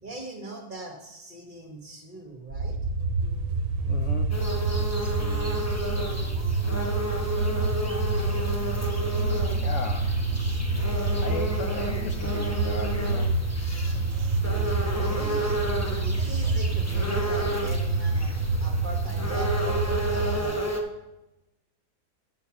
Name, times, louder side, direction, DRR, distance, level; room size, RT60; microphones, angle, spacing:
voice 1, 0.0-2.8 14.9-15.6 16.0-18.3 18.6-20.6, right 2 dB, 30° right, 2 dB, 1.3 m, -41 dB
sound 1, 2.5-20.4, right 3 dB, 55° right, 1.1 m, -27 dB
sound 2, 2.6-17.4, right 7 dB, 90° right, 1.2 m, -39 dB
voice 2, 3.8-4.4 9.6-10.6 11.2-13.4, left 5 dB, 65° left, 5 dB, 0.8 m, -37 dB
sound 3, 4.3-20.8, right 1 dB, 15° left, 0.7 m, -32 dB
8.4 x 6.9 x 5.9 m, 0.96 s
omnidirectional pair, 1.8 m